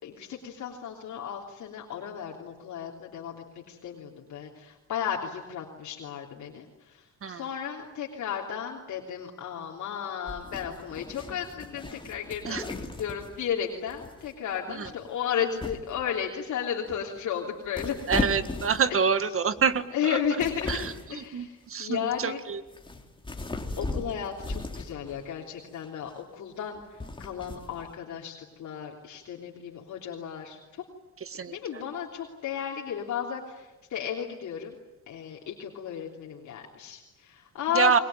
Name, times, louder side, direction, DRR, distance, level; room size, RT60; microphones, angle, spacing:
voice 1, 0.0-18.2 18.9-19.0 19.9-22.4 23.8-30.8 31.4-34.8 35.1-38.0, left 8 dB, 70° left, -1 dB, 3.3 m, -34 dB
sound 1, 10.3-13.5 13.9-14.3 14.7-15.1 15.6-16.0 16.8-17.2 17.6-19.1 19.6-19.8 20.1-21.1 21.9-22.2 22.6-25.2 25.8-26.1 26.7-27.9, left 2 dB, 15° left, 3.3 m, -37 dB
voice 2, 18.1-20.2 20.7-22.6 31.2-31.8 37.7-38.0, right 6 dB, 45° right, 12 dB, 1.9 m, -27 dB
29.5 x 21.5 x 9.3 m, 1.1 s
cardioid pair, 90°, 30 cm